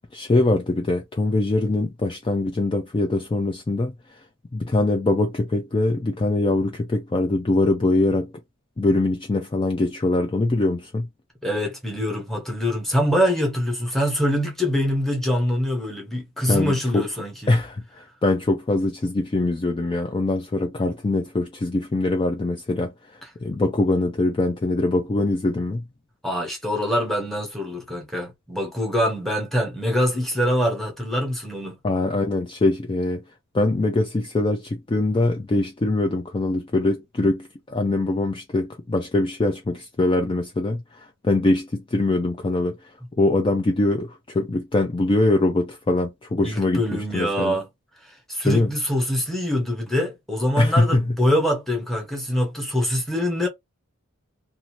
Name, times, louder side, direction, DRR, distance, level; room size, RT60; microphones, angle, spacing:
voice 1, 0.1-3.9 4.5-8.3 8.8-11.1 16.5-17.0 17.5-25.8 31.8-33.2 33.5-42.8 43.2-47.6 48.4-48.7 50.6-51.0, left 2 dB, 25° left, 0.4 m, -23 dB
voice 2, 11.4-17.5 26.2-31.8 46.4-47.7 48.3-53.5, equal, ahead, 1.0 m, -24 dB
2.7 x 2.5 x 2.9 m
head